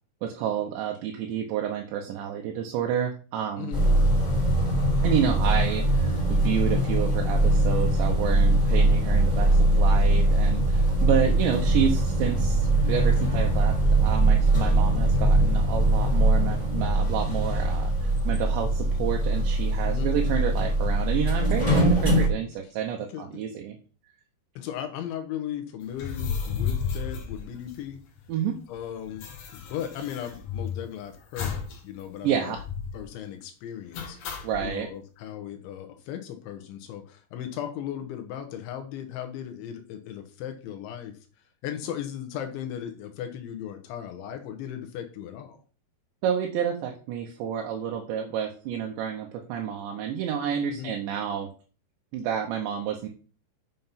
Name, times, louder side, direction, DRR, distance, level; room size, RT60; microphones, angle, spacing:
voice 1, 0.2-3.7 5.0-23.8 28.3-28.6 32.2-32.6 34.4-34.9 46.2-51.5 52.1-53.1, right 9 dB, 75° right, 2 dB, 3.1 m, -29 dB
sound 1, 3.7-22.3, right 1 dB, 10° left, 4.0 m, -22 dB
voice 2, 24.6-28.0 28.7-32.6 32.9-41.2 41.6-45.6 50.7-50.9, left 10 dB, 80° left, 6 dB, 3.3 m, -37 dB
sound 2, 25.9-28.2 28.5-28.6 28.8-30.9 31.4-31.8 32.1-32.2 32.5-33.0 33.9-34.7, left 6 dB, 55° left, 2.5 m, -33 dB
7.6 x 6.7 x 5.7 m, 0.39 s
omnidirectional pair, 5.4 m